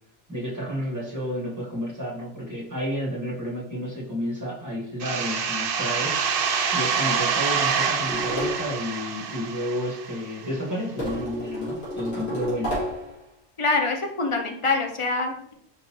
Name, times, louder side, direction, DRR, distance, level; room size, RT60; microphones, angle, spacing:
voice 1, 0.3-6.2 6.7-12.7, equal, 15° right, -5 dB, 1.3 m, -31 dB
sound 1, 5.0-10.5, right 6 dB, 60° right, 0.6 m, -26 dB
sound 2, 8.0-8.7 11.0-13.1, left 1 dB, 75° left, 2.2 m, -30 dB
voice 2, 13.6-15.5, left 3 dB, 45° left, 3 dB, 0.4 m, -25 dB
4.6 x 3.9 x 2.9 m, 0.70 s
omnidirectional pair, 1.3 m